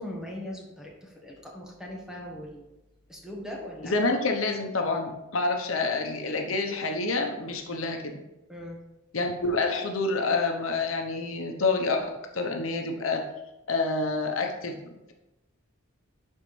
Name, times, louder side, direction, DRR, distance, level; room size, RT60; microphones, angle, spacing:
voice 1, 0.0-2.7 3.1-4.0 8.5-8.8, left 1 dB, 5° right, -2 dB, 1.3 m, -40 dB
voice 2, 3.8-8.1 9.1-13.2 13.7-14.8, left 3 dB, 75° left, 3 dB, 0.9 m, -28 dB
11.0 x 4.4 x 3.3 m, 0.95 s
head